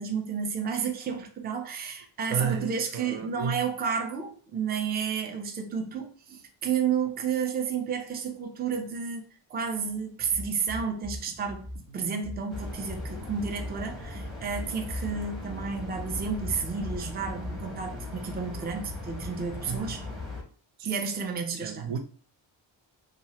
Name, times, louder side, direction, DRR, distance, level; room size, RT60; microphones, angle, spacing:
voice 1, 0.0-9.2 9.5-11.7 11.9-20.0 20.8-21.9, right 6 dB, 20° right, 0.4 m, -31 dB
voice 2, 2.3-3.7 19.7-20.0 20.8-21.0 21.5-22.0, right 7 dB, 80° right, 0.6 m, -33 dB
sound 1, 10.3-17.9, equal, 45° right, 0.8 m, -40 dB
sound 2, 12.5-20.4, left 2 dB, ahead, 0.7 m, -39 dB
2.9 x 2.4 x 2.8 m
wide cardioid pair, 120°, 46 cm